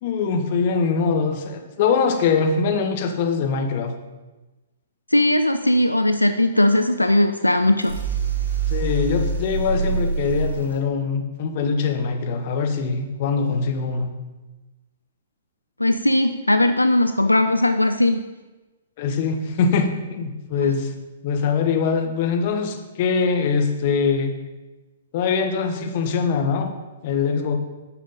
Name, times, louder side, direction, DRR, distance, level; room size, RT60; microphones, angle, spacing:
voice 1, 0.0-3.9 8.7-14.1 19.0-20.9 21.2-24.3 25.1-26.7 27.0-27.6, left 5 dB, 45° left, 5 dB, 1.0 m, -22 dB
voice 2, 5.1-8.0 15.8-18.2, left 1 dB, 85° left, 9 dB, 0.4 m, -18 dB
sound 1, 7.8-10.8, right 4 dB, 60° right, 3.0 m, -25 dB
9.7 x 6.1 x 4.0 m, 1.2 s
figure-of-eight pair, 115°, 0 cm